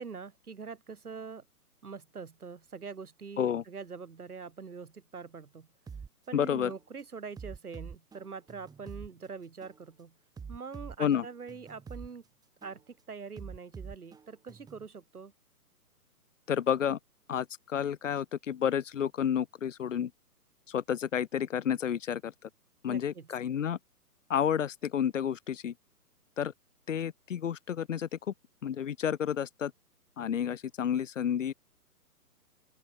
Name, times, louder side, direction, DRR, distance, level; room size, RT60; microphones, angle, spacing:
voice 1, 0.0-1.5 1.8-5.7 6.3-10.1 10.5-12.2 12.6-15.3 22.9-23.3, right 5 dB, 70° right, 6.9 m, -44 dB
sound 1, 5.9-6.1 6.6-6.8 7.4-9.1 9.6-9.8 10.4-12.1 12.6-12.8 13.4-14.9, right 5 dB, 10° right, 6.2 m, -45 dB
voice 2, 6.3-6.7 11.0-11.2 16.5-17.0 17.3-20.1 20.7-22.5 22.8-23.8 24.3-25.7 26.4-26.5 26.9-28.1 28.6-29.7 30.2-31.5, left 8 dB, 50° left, 2.2 m, -30 dB
open air
figure-of-eight pair, 130°, 47 cm